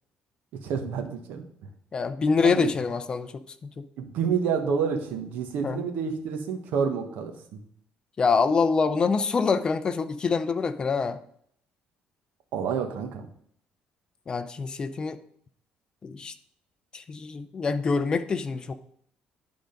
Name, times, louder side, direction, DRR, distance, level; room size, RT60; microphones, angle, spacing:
voice 1, 0.6-1.4 2.4-2.7 4.0-7.6 12.5-13.3, right 6 dB, 75° right, 5 dB, 1.3 m, -29 dB
voice 2, 1.9-3.9 5.6-5.8 8.2-11.2 14.3-15.2 16.0-16.3 16.9-18.7, left 5 dB, 25° left, 10 dB, 0.5 m, -25 dB
10.5 x 3.8 x 5.2 m, 0.67 s
cardioid pair, 150°, 3 cm